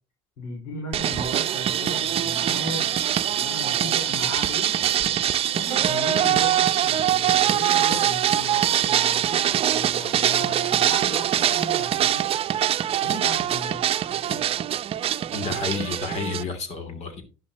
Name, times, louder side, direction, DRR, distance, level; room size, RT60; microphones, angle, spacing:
voice 1, 0.4-2.9 3.3-4.7 5.5-12.2 13.0-13.8 14.1-14.4, left 2 dB, 75° left, 4.9 m, -36 dB
sound 1, 0.9-16.4, right 11 dB, 45° right, 0.7 m, -23 dB
voice 2, 15.3-17.2, left 5 dB, 55° left, 3.0 m, -30 dB
11.0 x 11.0 x 3.0 m
supercardioid pair, 80°, 13 cm